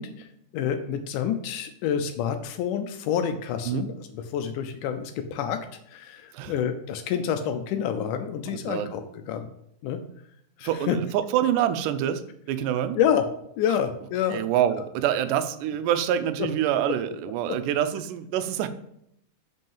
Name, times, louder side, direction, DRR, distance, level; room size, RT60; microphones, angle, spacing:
voice 1, 0.0-9.0 9.3-9.5 9.8-10.0 10.6-11.0 13.0-13.2 13.6-14.4, left 8 dB, 85° left, 7 dB, 2.1 m, -28 dB
voice 2, 8.5-8.9 10.6-12.2 12.5-13.0 14.3-18.7, right 10 dB, 85° right, 10 dB, 2.2 m, -26 dB
5.3 x 5.3 x 5.5 m, 0.73 s
omnidirectional pair, 3.6 m